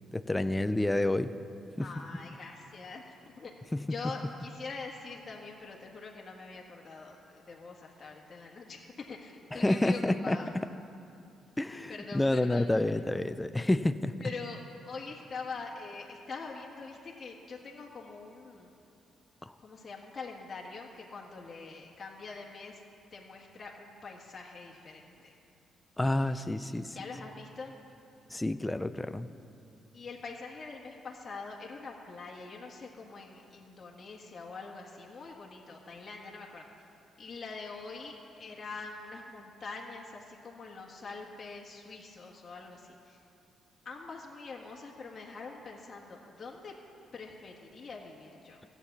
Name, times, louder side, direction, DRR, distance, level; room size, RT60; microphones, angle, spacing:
voice 1, 0.1-1.3 1.8-1.9 3.7-3.8 9.5-10.4 11.6-14.3 19.4-19.5 26.0-27.0 28.3-29.3, left 1 dB, 10° left, 11 dB, 0.5 m, -29 dB
voice 2, 1.8-3.5 3.9-10.5 11.9-12.7 14.2-18.8 19.6-22.8 23.1-25.3 26.1-27.7 29.9-36.6 37.2-43.2 43.8-46.7 47.1-48.6, left 4 dB, 35° left, -2 dB, 1.6 m, -44 dB
14.0 x 8.3 x 7.3 m, 2.8 s
cardioid pair, 90°, 0 cm